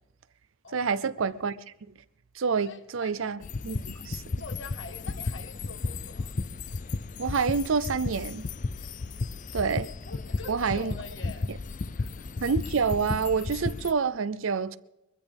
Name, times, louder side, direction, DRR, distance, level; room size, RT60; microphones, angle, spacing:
voice 1, 0.7-1.6 2.4-3.4 3.6-4.2 7.2-8.4 9.5-9.9 10.5-10.9 12.4-14.8, right 5 dB, 80° right, 0.5 m, -27 dB
voice 2, 2.6-3.3 4.4-6.3 10.1-11.5 11.9-12.3, left 3 dB, 65° left, 1.5 m, -45 dB
sound 1, 3.4-13.9, left 3 dB, 40° left, 0.4 m, -34 dB
22.5 x 15.0 x 3.5 m
head